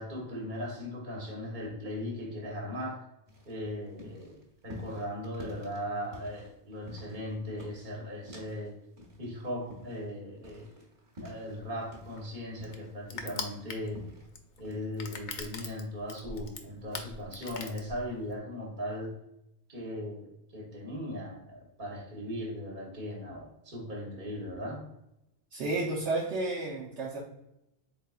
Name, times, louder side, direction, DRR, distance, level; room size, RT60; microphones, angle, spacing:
voice 1, 0.0-3.1 3.5-8.8 9.2-10.7 11.2-14.1 14.6-19.2 19.7-24.8, equal, 45° right, -1 dB, 1.2 m, -38 dB
sound 1, 3.3-8.7 9.0-12.3 12.6-14.3 14.6-14.9, left 1 dB, 30° right, 1.0 m, -48 dB
Crushing, 11.6-18.4, left 4 dB, 55° left, 0.6 m, -42 dB
voice 2, 25.5-27.2, right 2 dB, 85° right, -6 dB, 1.1 m, -31 dB
4.0 x 3.9 x 2.3 m, 0.84 s
omnidirectional pair, 1.1 m